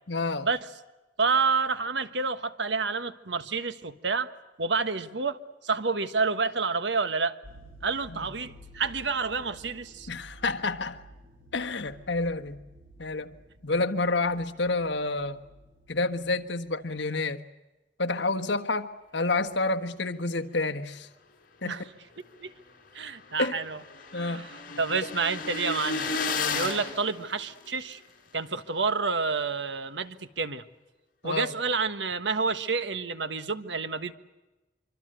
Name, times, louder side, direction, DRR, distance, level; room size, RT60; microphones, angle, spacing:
voice 1, 0.1-0.5 8.1-8.2 10.1-11.0 11.5-12.6 13.0-13.3 13.6-15.4 15.9-17.4 18.0-21.1 21.6-21.8 23.4-23.5 24.1-24.5 26.3-26.6 31.2-31.5, left 3 dB, 75° left, 6 dB, 1.5 m, -29 dB
voice 2, 1.2-4.3 4.6-7.4 7.8-10.1 21.7-21.8 22.4-22.5 22.9-23.8 24.1-24.5 24.8-26.1 26.5-28.0 28.3-30.6 31.2-34.1, right 4 dB, 75° right, 11 dB, 1.5 m, -29 dB
sound 1, 7.4-16.5 16.7-16.9, equal, 55° right, 6.5 m, -52 dB
sound 2, 22.4-22.5 22.8-22.9 23.0-27.9, left 4 dB, 55° left, 4.7 m, -34 dB
25.5 x 25.5 x 7.9 m, 1.1 s
head